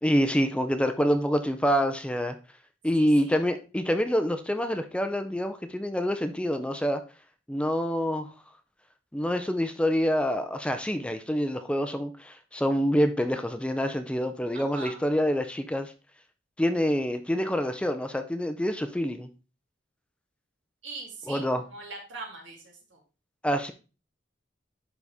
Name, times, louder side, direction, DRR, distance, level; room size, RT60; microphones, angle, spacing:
voice 1, 0.0-2.4 2.8-7.0 7.5-8.3 9.1-15.9 16.6-19.3 21.3-21.6 23.4-23.7, equal, 5° left, 8 dB, 0.5 m, -26 dB
voice 2, 3.0-3.4 14.5-15.1 20.8-23.0, right 3 dB, 80° right, -2 dB, 3.1 m, -42 dB
11.0 x 4.1 x 3.5 m, 0.33 s
head